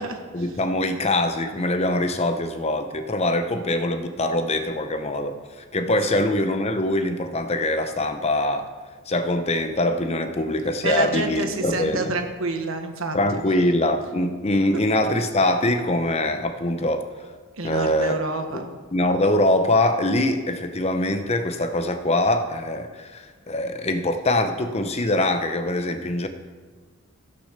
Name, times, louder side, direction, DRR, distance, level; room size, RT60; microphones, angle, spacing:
voice 1, 0.3-5.4 5.7-8.7 9.1-12.1 13.1-17.1 17.6-18.2 18.9-26.3, left 1 dB, 30° left, 8 dB, 0.7 m, -23 dB
voice 2, 10.8-13.4 14.7-14.8 17.6-18.8, right 3 dB, 70° right, 5 dB, 1.4 m, -28 dB
15.0 x 6.4 x 6.6 m, 1.4 s
head